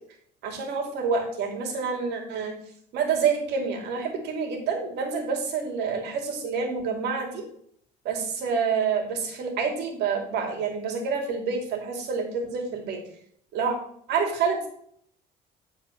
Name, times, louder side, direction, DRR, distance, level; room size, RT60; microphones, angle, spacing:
voice 1, 0.4-2.5 2.9-7.4 8.0-13.0 13.5-13.8 14.1-14.7, right 5 dB, 80° right, 2 dB, 2.6 m, -28 dB
10.0 x 4.7 x 5.6 m, 0.64 s
cardioid pair, 110°, 17 cm